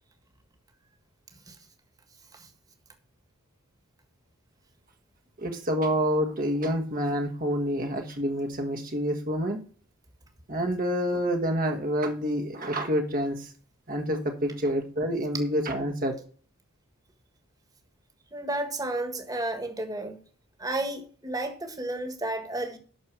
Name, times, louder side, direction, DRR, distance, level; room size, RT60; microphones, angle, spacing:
voice 1, 5.4-9.6 10.5-13.5 13.9-16.1, equal, 40° right, 1.3 m, -28 dB
voice 2, 18.3-20.2 20.6-22.8, right 2 dB, 15° right, 1.6 m, -32 dB
9.4 x 6.4 x 6.0 m
head